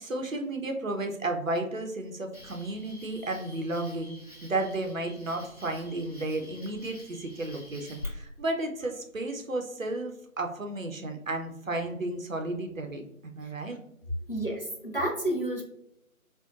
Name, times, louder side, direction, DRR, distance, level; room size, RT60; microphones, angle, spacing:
voice 1, 0.0-13.8, right 2 dB, 65° right, 4 dB, 0.7 m, -33 dB
Cricket, 2.3-8.0, left 2 dB, 25° left, 1.2 m, -48 dB
voice 2, 14.3-15.7, right 1 dB, 40° left, -1 dB, 0.6 m, -31 dB
4.4 x 2.1 x 2.4 m, 0.76 s
figure-of-eight pair, 165°, 43 cm